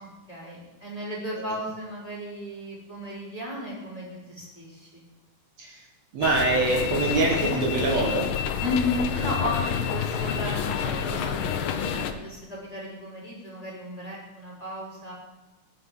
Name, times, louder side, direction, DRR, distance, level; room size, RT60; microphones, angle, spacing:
voice 1, 0.0-5.1 8.6-15.1, left 1 dB, 10° left, -6 dB, 4.1 m, -34 dB
voice 2, 6.1-8.3, right 3 dB, 60° right, -3 dB, 2.7 m, -24 dB
sound 1, 6.2-12.1, left 8 dB, 85° left, 1.1 m, -28 dB
21.0 x 9.9 x 3.9 m, 1.1 s
omnidirectional pair, 3.5 m